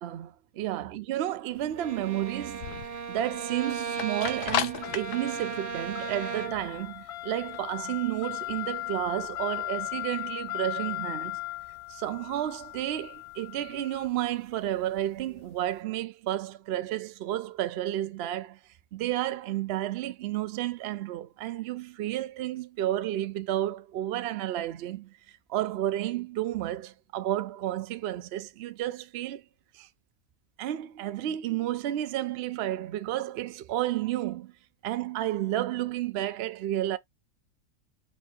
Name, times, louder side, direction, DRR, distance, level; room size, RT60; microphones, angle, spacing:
voice 1, 0.0-2.7 3.1-11.4 11.9-18.6 18.9-25.1 25.5-29.4 29.7-29.9 30.6-34.5 34.8-37.0, right 13 dB, 85° right, 0.5 m, -31 dB
sound 1, 1.6-15.7, left 14 dB, 75° left, 1.1 m, -37 dB
Bowed string instrument, 1.8-6.8, right 6 dB, 45° right, 0.8 m, -36 dB
4.4 x 2.7 x 4.2 m
omnidirectional pair, 1.7 m